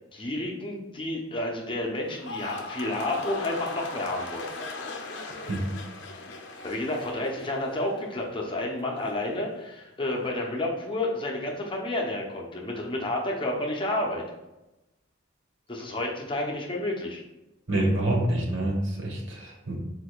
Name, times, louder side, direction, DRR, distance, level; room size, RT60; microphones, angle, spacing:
voice 1, 0.1-4.5 6.6-14.2 15.7-17.2, left 1 dB, 25° left, -1 dB, 0.7 m, -30 dB
sound 1, 2.0-8.4 8.7-9.2, left 3 dB, 60° left, 0.5 m, -39 dB
voice 2, 17.7-19.8, right 1 dB, 80° right, 0 dB, 1.1 m, -27 dB
4.7 x 4.3 x 2.4 m, 0.98 s
head